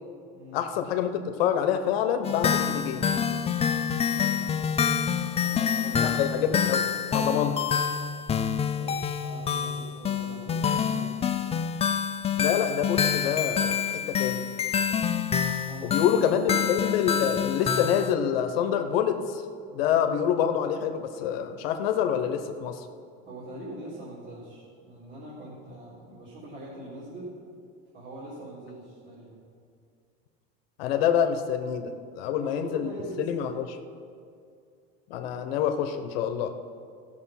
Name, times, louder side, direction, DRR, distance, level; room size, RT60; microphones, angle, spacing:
voice 1, 0.5-3.1 6.0-7.6 12.4-14.4 15.8-19.4 19.7-22.8 30.8-32.9 33.2-33.6 35.1-36.5, left 8 dB, 85° left, 7 dB, 0.9 m, -26 dB
sound 1, 2.2-18.1, left 7 dB, 20° left, 0.5 m, -27 dB
voice 2, 4.1-4.4 5.2-6.6 8.7-11.1 15.7-16.6 23.2-27.3 27.9-29.4 32.3-33.6, right 1 dB, 40° right, -8 dB, 3.3 m, -42 dB
13.5 x 6.5 x 5.7 m, 2.3 s
supercardioid pair, 120°, 29 cm